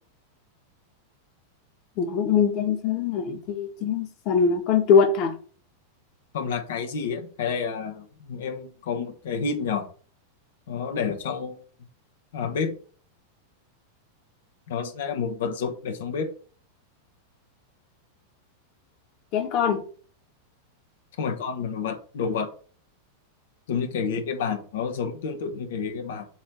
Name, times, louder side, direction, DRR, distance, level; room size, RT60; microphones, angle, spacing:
voice 1, 2.0-5.3 19.3-19.8, left 6 dB, 40° left, 1.6 m, -22 dB
voice 2, 6.3-9.9 10.7-11.6 12.3-12.8 14.7-16.3 21.2-22.5 23.7-26.3, left 6 dB, 60° left, 1.3 m, -29 dB
7.3 x 3.3 x 6.2 m
figure-of-eight pair, 90°, 0 cm